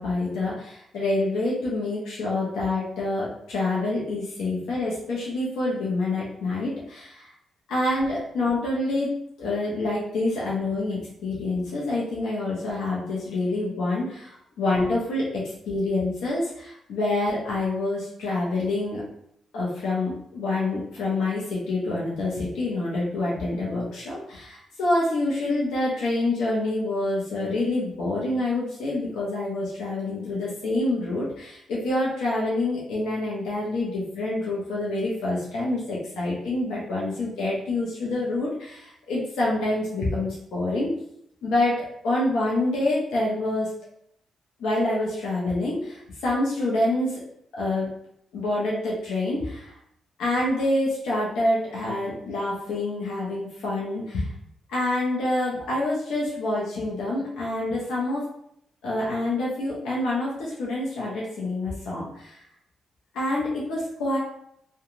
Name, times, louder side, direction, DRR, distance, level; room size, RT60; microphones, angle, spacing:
voice 1, 0.0-7.3 7.7-9.1 9.4-19.0 19.5-40.9 41.4-41.8 42.0-43.7 44.6-47.2 47.5-47.9 48.3-49.7 50.2-54.3 54.7-58.3 58.8-62.4 63.1-64.2, left 2 dB, 85° left, -6 dB, 0.6 m, -27 dB
2.9 x 2.2 x 2.5 m, 0.71 s
supercardioid pair, 55°, 0 cm